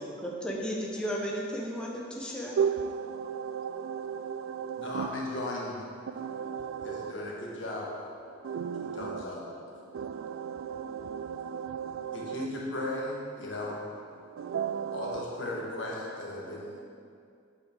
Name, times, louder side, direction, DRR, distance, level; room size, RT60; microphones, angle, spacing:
voice 1, 0.2-2.6, equal, 5° left, -3 dB, 1.0 m, -34 dB
voice 2, 2.6-5.1 6.1-7.1 8.4-9.2 9.9-12.4 14.4-15.2, right 7 dB, 85° right, 13 dB, 0.3 m, -34 dB
voice 3, 4.7-5.8 6.7-7.9 8.7-9.4 12.1-13.9 14.9-16.9, left 1 dB, 70° left, -3 dB, 1.7 m, -36 dB
8.7 x 8.1 x 3.6 m, 2.4 s
head